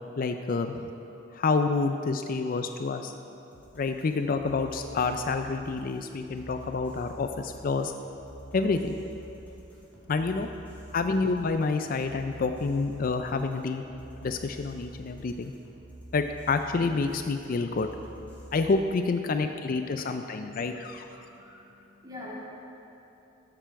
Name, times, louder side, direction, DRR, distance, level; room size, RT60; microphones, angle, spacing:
voice 1, 0.2-0.9 1.4-3.1 3.8-7.9 8.5-9.0 10.1-10.5 10.9-13.8 14.2-15.5 16.1-17.9 18.5-21.1, left 4 dB, 45° left, 7 dB, 0.4 m, -28 dB
sound 1, 3.5-18.7, right 1 dB, 10° left, 2.2 m, -48 dB
voice 2, 21.1-22.4, left 2 dB, 20° right, -6 dB, 2.1 m, -45 dB
13.5 x 6.9 x 4.6 m, 3.0 s
head